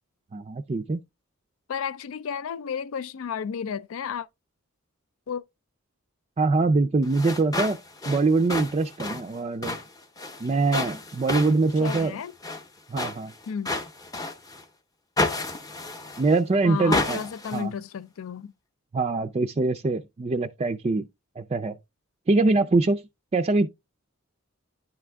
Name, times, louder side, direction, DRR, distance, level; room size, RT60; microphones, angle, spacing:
voice 1, 0.3-1.0 6.4-7.8 8.1-9.8 10.4-12.1 12.9-13.3 16.2-17.2 17.5-17.7 18.9-21.0 21.4-21.8 22.3-23.0 23.3-23.7, right 3 dB, 30° right, 0.4 m, -23 dB
voice 2, 1.7-4.3 5.3-5.4 11.8-12.3 13.5-13.8 16.6-18.5, left 7 dB, 75° left, 0.4 m, -32 dB
sound 1, 7.0-14.6 15.2-16.4 16.9-17.6, left 2 dB, 15° left, 0.7 m, -31 dB
10.0 x 3.5 x 3.4 m
head